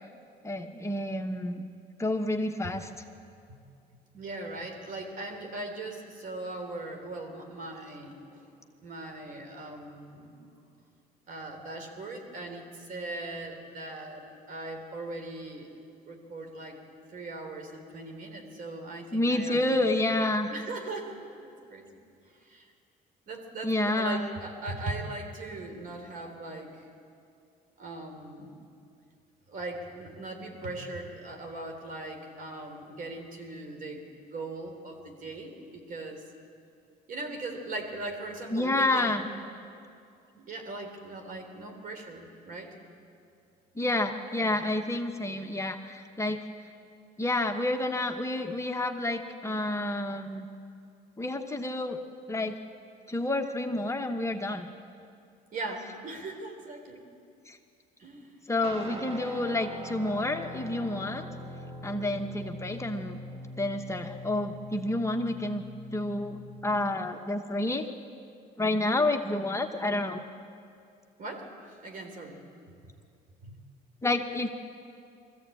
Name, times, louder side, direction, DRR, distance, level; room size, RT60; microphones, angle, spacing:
voice 1, 0.4-1.7 2.0-2.9 19.1-20.5 23.6-24.3 38.5-39.2 43.8-46.4 47.2-50.5 51.2-52.0 52.3-52.6 53.1-54.7 57.5-57.6 58.5-61.3 61.8-63.2 63.6-65.6 65.9-67.9 68.6-70.2 74.0-74.5, left 2 dB, 15° left, 4 dB, 1.0 m, -29 dB
voice 2, 4.1-8.4 8.8-10.3 11.3-15.7 16.1-16.8 17.1-19.8 20.5-21.9 22.4-22.7 23.3-26.9 27.8-28.5 29.5-36.2 37.1-39.3 40.3-42.7 55.5-57.0 58.0-58.4 58.9-59.2 61.9-62.3 71.2-72.4 73.4-73.6, right 2 dB, 55° right, 4 dB, 3.5 m, -39 dB
Guitar, 58.6-66.8, equal, 35° right, 1.8 m, -43 dB
22.0 x 15.0 x 8.4 m, 2.4 s
cardioid pair, 110°, 17 cm